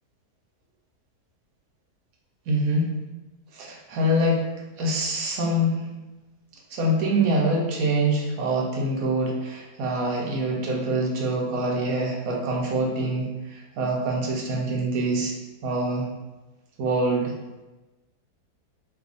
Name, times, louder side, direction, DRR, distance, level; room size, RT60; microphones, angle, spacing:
voice 1, 2.5-2.9 3.5-4.5 4.8-5.9 6.7-15.3 15.6-16.1 16.8-17.3, right 1 dB, 70° right, -2 dB, 1.0 m, -25 dB
2.7 x 2.3 x 3.7 m, 1.1 s
omnidirectional pair, 1.7 m